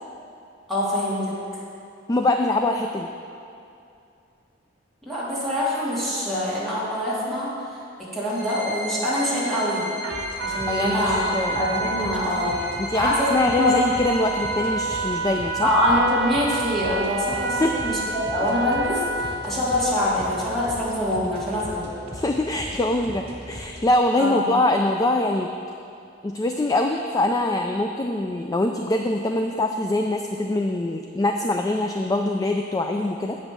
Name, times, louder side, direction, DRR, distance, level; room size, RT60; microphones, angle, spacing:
voice 1, 0.7-1.4 5.0-7.5 8.0-9.9 10.4-12.6 12.9-13.8 15.6-21.9 24.2-24.5, left 1 dB, ahead, -9 dB, 2.3 m, -24 dB
voice 2, 2.1-3.1 10.7-11.6 12.8-15.7 17.6-18.0 22.1-25.5 26.2-33.4, left 2 dB, 20° left, 4 dB, 0.3 m, -23 dB
sound 1, 8.3-14.5, left 1 dB, 50° left, 2.4 m, -36 dB
Trumpet, 10.0-19.6, right 3 dB, 85° right, 0.8 m, -30 dB
sound 2, 10.1-23.9, equal, 35° right, 1.6 m, -39 dB
7.9 x 5.4 x 7.4 m, 2.6 s
head